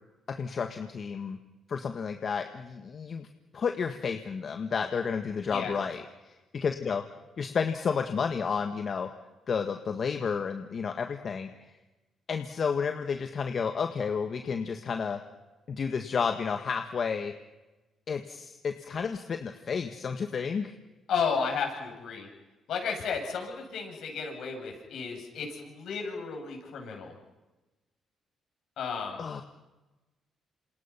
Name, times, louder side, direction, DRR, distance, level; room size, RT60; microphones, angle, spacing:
voice 1, 0.3-1.4 1.7-3.3 3.5-7.0 7.4-9.1 9.5-11.5 12.3-15.2 15.7-17.3 18.1-20.7 29.2-29.4, left 6 dB, 50° left, 6 dB, 1.6 m, -31 dB
voice 2, 21.1-22.3 22.7-27.1 28.8-29.2, left 5 dB, 70° left, 2 dB, 7.6 m, -33 dB
28.0 x 27.5 x 5.9 m, 1.1 s
cardioid pair, 90°, 0 cm